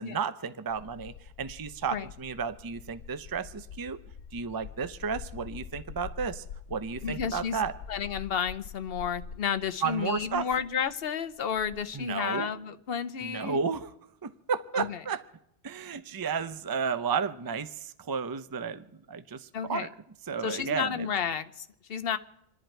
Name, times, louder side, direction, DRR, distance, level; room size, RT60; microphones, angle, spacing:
voice 1, 0.0-4.0 4.3-7.7 9.8-10.5 11.9-12.5 13.2-13.9 14.2-15.2 15.6-19.9 20.3-21.1, right 6 dB, 25° right, 11 dB, 0.5 m, -33 dB
sound 1, 0.7-11.1 11.3-12.0, left 7 dB, 85° left, 1.1 m, -45 dB
voice 2, 7.0-7.6 7.9-13.6 14.7-15.0 19.5-19.9 20.4-22.2, left 7 dB, 60° left, 12 dB, 1.0 m, -31 dB
28.5 x 10.5 x 4.5 m, 0.79 s
omnidirectional pair, 1.1 m